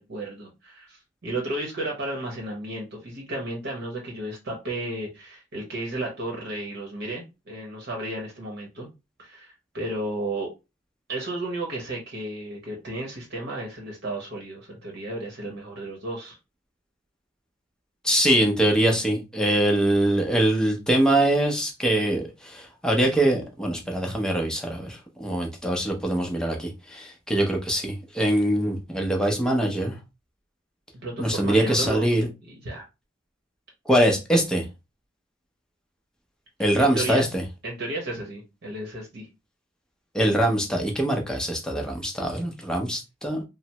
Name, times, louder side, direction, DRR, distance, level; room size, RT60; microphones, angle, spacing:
voice 1, 0.0-8.9 9.2-10.5 11.1-16.4 31.0-32.1 32.4-32.9 36.8-37.2 37.6-39.3, right 1 dB, 55° right, 0.9 m, -33 dB
voice 2, 18.0-30.0 31.2-32.3 33.9-34.6 36.6-37.4 40.1-43.4, right 1 dB, 5° left, 0.6 m, -23 dB
3.2 x 2.0 x 2.9 m
head